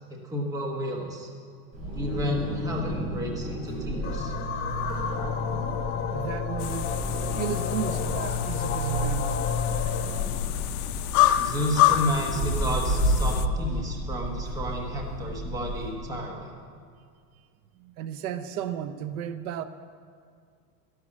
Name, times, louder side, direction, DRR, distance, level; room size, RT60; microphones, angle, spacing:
voice 1, 0.1-1.3 1.9-4.3 11.4-16.5, equal, 5° right, 1 dB, 1.0 m, -31 dB
Wind, 1.7-15.9, right 1 dB, 35° right, 4.9 m, -32 dB
sound 1, 4.0-10.2, left 5 dB, 25° left, 1.1 m, -30 dB
voice 2, 6.1-6.9 7.2-9.5 17.8-19.6, right 9 dB, 65° right, 12 dB, 0.8 m, -34 dB
sound 2, 6.6-13.5, left 14 dB, 65° left, 0.7 m, -27 dB
12.5 x 11.5 x 7.3 m, 2.1 s
supercardioid pair, 170°, 49 cm